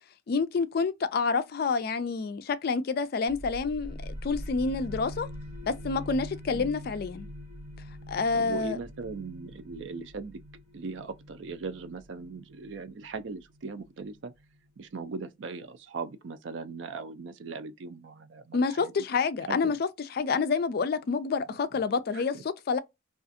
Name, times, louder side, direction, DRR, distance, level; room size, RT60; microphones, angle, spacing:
voice 1, 0.3-5.3 5.7-7.3 8.1-8.8 18.5-22.8, left 4 dB, 50° left, 0.3 m, -28 dB
sound 1, 3.3-14.7, equal, 15° right, 1.0 m, -43 dB
voice 2, 8.3-10.4 10.7-14.3 14.8-18.9 19.5-19.8 22.1-22.4, right 4 dB, 65° right, 0.4 m, -39 dB
2.5 x 2.4 x 2.5 m
head